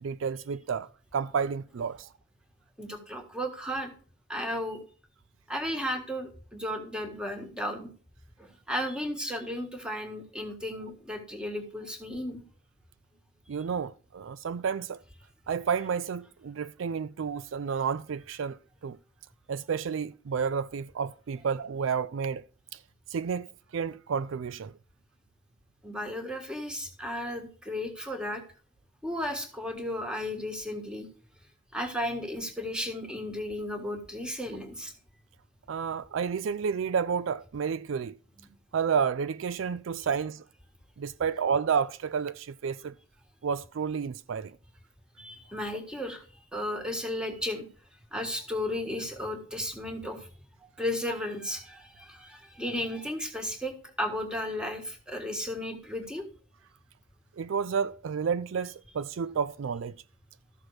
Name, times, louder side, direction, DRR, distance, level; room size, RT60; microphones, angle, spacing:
voice 1, 0.0-2.1 13.5-15.0 15.5-18.6 18.8-19.0 19.5-22.4 22.7-22.8 23.1-24.7 35.7-38.2 38.7-40.4 41.0-42.9 43.4-44.6 57.4-60.0, right 6 dB, 70° right, 0.4 m, -30 dB
voice 2, 2.8-3.9 4.3-4.8 5.5-7.9 8.4-12.4 25.8-28.4 29.0-31.1 31.7-34.9 38.4-38.5 45.2-46.3 46.5-47.7 48.1-50.3 50.8-56.2, left 1 dB, 5° right, 1.6 m, -34 dB
13.5 x 6.2 x 4.8 m
head